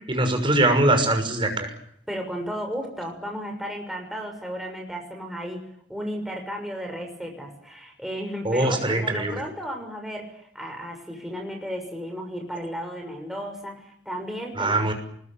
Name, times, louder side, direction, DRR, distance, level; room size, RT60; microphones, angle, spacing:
voice 1, 0.1-1.7 8.4-9.4 14.6-14.9, right 2 dB, 30° right, 6 dB, 6.2 m, -22 dB
voice 2, 2.1-5.6 5.9-14.9, equal, ahead, 1 dB, 6.4 m, -34 dB
25.0 x 21.0 x 8.8 m, 0.69 s
head